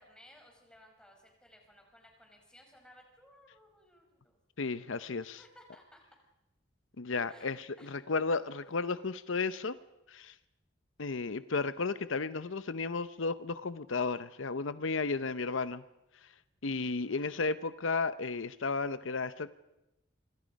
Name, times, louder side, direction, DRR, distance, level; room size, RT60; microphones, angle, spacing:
voice 1, 0.0-4.4 5.4-6.0 7.3-8.0, left 1 dB, 5° left, 1 dB, 5.4 m, -59 dB
voice 2, 4.6-5.4 7.0-9.8 10.1-10.3 11.0-15.8 16.6-19.5, left 4 dB, 80° left, 14 dB, 0.8 m, -33 dB
26.5 x 25.5 x 5.3 m, 0.90 s
head